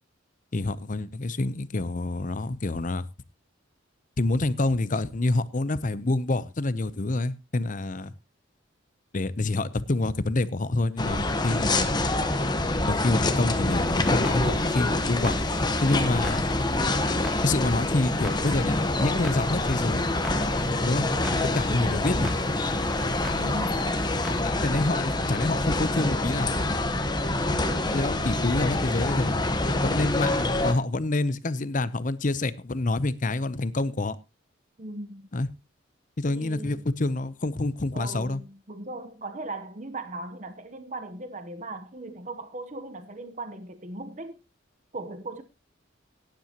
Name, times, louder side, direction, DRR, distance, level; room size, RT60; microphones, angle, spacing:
voice 1, 0.5-3.0 4.2-8.1 9.1-11.9 12.9-15.4 15.8-16.4 17.4-20.0 20.8-21.1 21.5-22.3 24.4-26.7 27.9-29.4 29.7-34.2 35.3-35.5 36.2-38.4, left 2 dB, 40° left, 0.7 m, -27 dB
sound 1, 11.0-30.7, left 2 dB, 20° left, 1.1 m, -26 dB
Clock, 13.9-24.4, equal, ahead, 2.6 m, -44 dB
voice 2, 23.4-23.8 34.8-35.3 36.2-36.9 37.9-44.4 44.9-45.4, right 2 dB, 35° right, 0.9 m, -38 dB
17.5 x 10.5 x 2.9 m
head